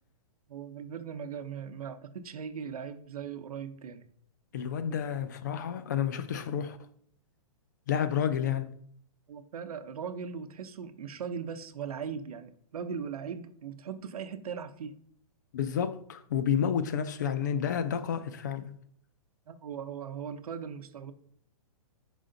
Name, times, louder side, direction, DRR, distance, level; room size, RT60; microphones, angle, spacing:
voice 1, 0.5-4.1 9.3-15.0 19.5-21.1, right 7 dB, 75° right, 0.8 m, -39 dB
voice 2, 4.5-6.8 7.9-8.7 15.5-18.7, left 8 dB, 30° left, 0.4 m, -30 dB
6.5 x 5.0 x 3.8 m
hypercardioid pair, 170°, 19 cm